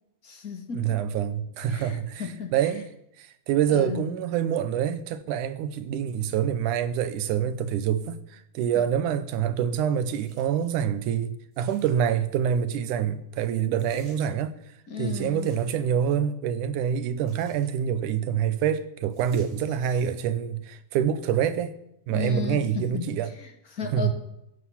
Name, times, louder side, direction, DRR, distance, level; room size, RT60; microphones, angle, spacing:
voice 1, 0.2-1.0 1.7-2.5 3.7-4.1 8.7-8.8 14.9-15.5 22.1-23.1 23.4-24.1, left 6 dB, 35° left, 1.8 m, -34 dB
voice 2, 0.7-2.2 2.5-2.9 3.2-14.5 15.0-21.7 22.1-23.3 23.9-24.1, right 9 dB, 85° right, 2.4 m, -26 dB
sound 1, 10.1-10.7 11.5-12.2 13.7-14.3 15.2-16.0 17.2-17.8 19.1-19.9 20.7-20.8, right 1 dB, 25° right, 7.4 m, -56 dB
16.5 x 9.3 x 7.2 m
omnidirectional pair, 3.5 m